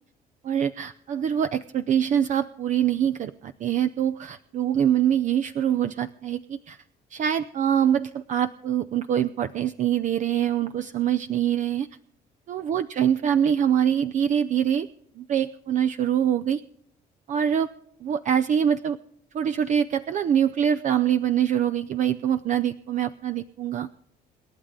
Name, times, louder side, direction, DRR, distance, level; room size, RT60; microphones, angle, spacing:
voice 1, 0.4-6.8 7.1-11.9 12.5-14.9 15.2-16.6 17.3-17.7 18.0-19.0 19.3-23.9, right 9 dB, 45° right, 11 dB, 0.6 m, -24 dB
27.5 x 11.0 x 3.8 m, 0.73 s
cardioid pair, 110°, 17 cm